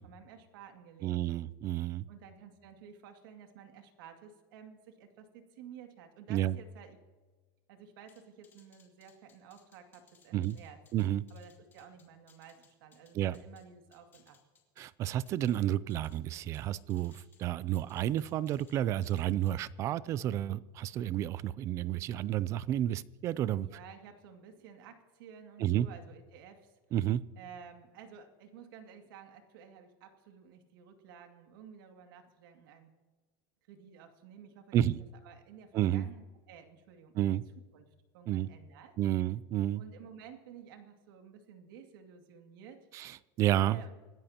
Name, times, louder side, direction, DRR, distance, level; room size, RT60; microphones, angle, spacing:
voice 1, 0.0-1.1 2.1-7.0 7.7-10.8 11.3-14.4 23.6-26.8 27.4-32.9 33.7-34.8 35.2-37.4 37.7-37.9 38.1-38.9 39.8-42.9 43.6-43.9, right 7 dB, 75° right, 5 dB, 2.3 m, -53 dB
voice 2, 1.0-2.0 6.3-6.6 10.3-10.6 10.9-11.2 13.1-13.4 14.8-23.7 25.6-25.9 26.9-27.2 34.7-35.0 35.7-36.1 37.1-37.4 38.3-38.5 39.0-39.8 42.9-43.8, right 12 dB, 25° right, 20 dB, 0.3 m, -31 dB
sound 1, 8.1-13.6 13.9-15.6 15.9-17.4 17.7-18.8 19.0-19.5, left 6 dB, 20° left, 2.2 m, -65 dB
25.5 x 13.5 x 2.9 m, 1.3 s
supercardioid pair, 175°, 11 cm